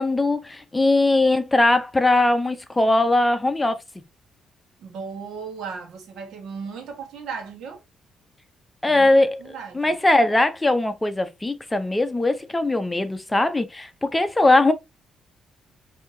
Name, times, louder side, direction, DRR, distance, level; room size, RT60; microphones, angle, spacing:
voice 1, 0.0-3.8 8.8-14.7, left 2 dB, 15° left, 0.6 m, -20 dB
voice 2, 4.8-7.8 8.9-10.0, right 5 dB, 75° right, 1.2 m, -36 dB
5.4 x 2.8 x 2.7 m
cardioid pair, 90°, 0 cm